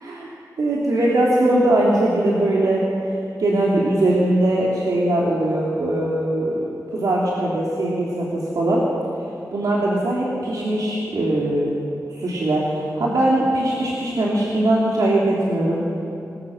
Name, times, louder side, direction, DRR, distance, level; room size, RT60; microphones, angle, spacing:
voice 1, 0.6-6.6 6.9-8.9 9.5-11.8 12.1-15.8, right 1 dB, 80° right, -5 dB, 3.5 m, -20 dB
26.5 x 21.5 x 6.7 m, 2.9 s
wide cardioid pair, 110°, 6 cm